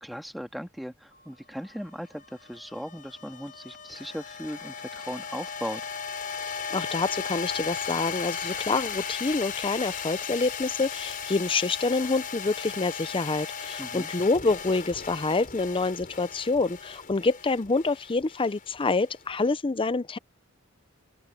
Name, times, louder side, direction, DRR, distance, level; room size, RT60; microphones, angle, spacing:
voice 1, 0.0-5.8 13.8-14.1, equal, ahead, 2.1 m, -38 dB
sound 1, 1.1-19.4, left 6 dB, 40° left, 5.8 m, -37 dB
sound 2, 5.2-15.4, right 5 dB, 80° right, 7.7 m, -57 dB
voice 2, 6.4-20.2, left 3 dB, 25° left, 0.6 m, -27 dB
head